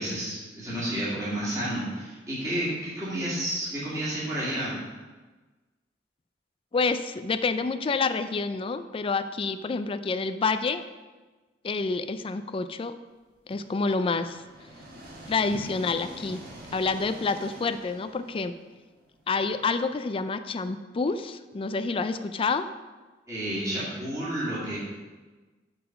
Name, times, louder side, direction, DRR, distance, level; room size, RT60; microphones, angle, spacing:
voice 1, 0.0-4.8 23.3-24.8, right 1 dB, 20° right, -9 dB, 2.2 m, -31 dB
voice 2, 6.7-10.8 11.6-12.9 13.5-14.4 15.3-16.4 16.7-18.5 19.3-22.7, left 4 dB, 30° left, 11 dB, 0.3 m, -28 dB
sound 1, 13.5-19.4, right 1 dB, 55° right, 1.7 m, -46 dB
6.8 x 4.0 x 6.4 m, 1.3 s
head